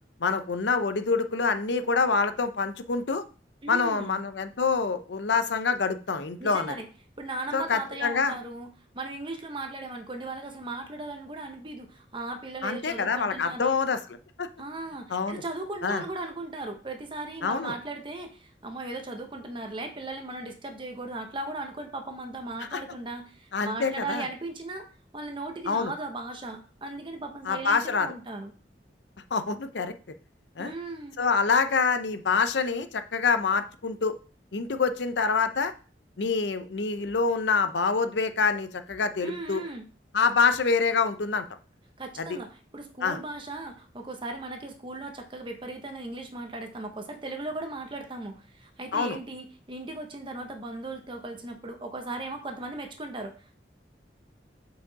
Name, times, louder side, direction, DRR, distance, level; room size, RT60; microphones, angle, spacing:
voice 1, 0.2-3.2 3.7-6.7 7.5-8.3 12.6-14.0 14.4-14.5 15.1-15.4 15.8-16.0 17.4-17.7 22.7-22.8 23.5-24.3 25.7-25.9 27.5-28.1 29.3-29.9 30.6-30.7 31.2-34.1 34.5-35.7 36.2-39.6 40.1-41.4 42.2-42.4 43.0-43.2 48.9-49.2, left 5 dB, 80° left, 10 dB, 0.6 m, -26 dB
voice 2, 3.6-4.2 6.4-6.9 7.2-8.7 8.9-13.8 14.6-24.9 25.1-28.5 30.6-31.2 39.2-39.9 42.0-53.6, right 2 dB, 30° right, 5 dB, 1.0 m, -37 dB
6.2 x 4.9 x 4.0 m, 0.38 s
head